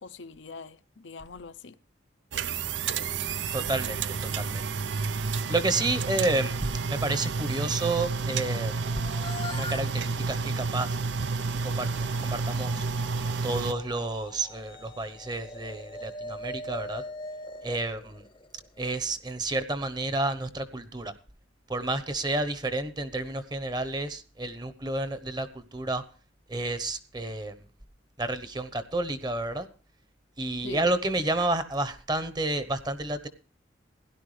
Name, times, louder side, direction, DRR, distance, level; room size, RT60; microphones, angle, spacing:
voice 1, 0.0-1.8 30.6-30.9, left 4 dB, 75° left, 0.8 m, -43 dB
sound 1, 2.3-13.7, right 4 dB, 75° right, 0.6 m, -30 dB
voice 2, 3.5-4.6 5.5-8.9 9.5-10.9 11.6-12.8 13.4-17.0 17.6-18.2 18.8-21.1 21.7-26.0 26.5-27.5 28.2-29.7 30.4-33.3, right 2 dB, 20° right, 1.0 m, -30 dB
sound 2, 8.7-18.9, left 2 dB, 25° left, 0.7 m, -42 dB
16.5 x 11.5 x 3.3 m
head